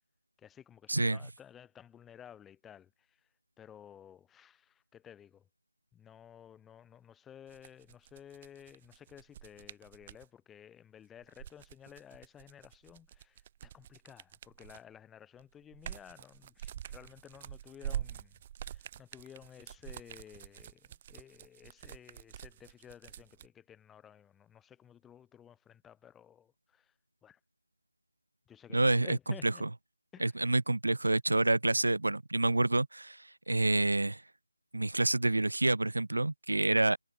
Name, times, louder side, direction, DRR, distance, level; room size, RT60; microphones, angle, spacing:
voice 1, 0.4-2.9 3.6-5.4 5.9-18.4 18.7-26.9 27.2-27.4 28.5-29.6 30.1-30.3, left 9 dB, 5° left, 5.3 m, -54 dB
voice 2, 0.9-1.2 28.7-29.2 29.4-29.7 30.2-34.2 34.7-37.0, right 2 dB, 60° right, 5.2 m, -28 dB
sound 1, 7.5-10.3 11.2-15.0 15.4-23.5, right 10 dB, 20° right, 4.6 m, -45 dB
figure-of-eight pair, 160°, 0 cm